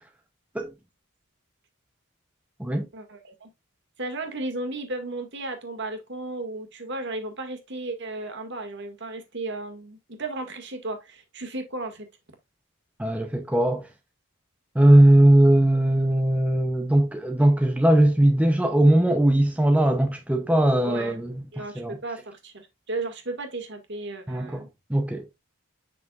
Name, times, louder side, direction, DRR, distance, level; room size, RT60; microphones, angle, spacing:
voice 1, 2.9-3.5 4.0-12.1 20.8-21.2 21.5-24.7, right 2 dB, 55° right, 1.9 m, -34 dB
voice 2, 13.0-13.9 14.7-21.4 21.8-22.0 24.3-24.6 24.9-25.2, right 1 dB, 5° right, 0.6 m, -19 dB
7.3 x 5.9 x 2.4 m
head